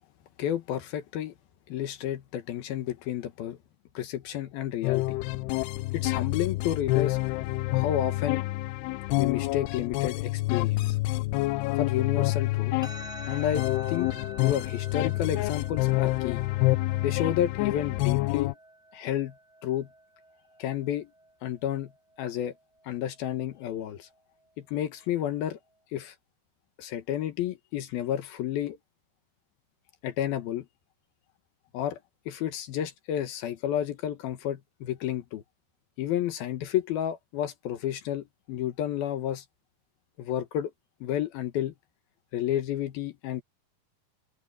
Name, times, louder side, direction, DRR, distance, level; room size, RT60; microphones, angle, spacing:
voice 1, 0.4-1.3 1.7-3.6 3.9-5.2 5.9-7.2 7.7-8.4 9.2-11.0 11.8-12.7 13.3-14.1 14.4-16.4 17.0-18.6 18.9-19.3 19.6-19.9 20.6-21.1 21.4-21.9 22.2-22.5 22.8-24.1 24.6-25.6 25.9-26.1 26.8-28.8 30.0-30.7 31.7-32.0 32.3-35.4 36.0-39.4 40.2-40.7 41.0-41.7 42.3-43.4, left 11 dB, 70° left, 3.0 m, -31 dB
sound 1, 4.8-18.5, left 20 dB, 90° left, 2.7 m, -28 dB
sound 2, 12.8-25.8, right 1 dB, ahead, 6.4 m, -49 dB
omnidirectional pair, 4.6 m